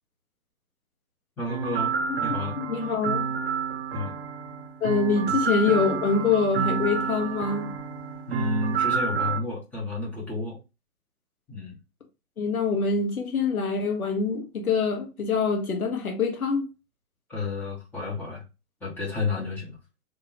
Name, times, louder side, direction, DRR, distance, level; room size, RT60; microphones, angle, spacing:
voice 1, 1.4-2.5 3.9-4.1 5.2-5.4 8.3-10.6 11.5-11.7 17.3-18.4 18.8-19.8, left 3 dB, 5° left, 0.6 m, -31 dB
sound 1, 1.5-9.4, right 6 dB, 45° right, 0.7 m, -29 dB
voice 2, 2.5-3.3 4.8-7.7 12.4-16.7, left 4 dB, 75° left, 1.5 m, -25 dB
3.3 x 2.9 x 3.0 m
figure-of-eight pair, 120°, 43 cm